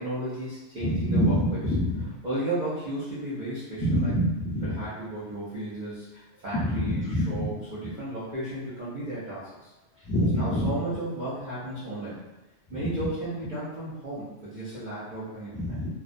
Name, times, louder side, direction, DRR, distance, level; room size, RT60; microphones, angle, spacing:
voice 1, 0.0-1.6 2.2-4.1 4.6-9.7 10.3-12.2 12.7-15.8, right 1 dB, 50° right, -11 dB, 0.6 m, -34 dB
voice 2, 0.8-2.0 3.8-4.7 6.6-7.5 10.0-10.7 15.6-15.9, equal, 10° left, -10 dB, 0.8 m, -25 dB
2.2 x 2.2 x 2.5 m, 1.1 s
omnidirectional pair, 1.2 m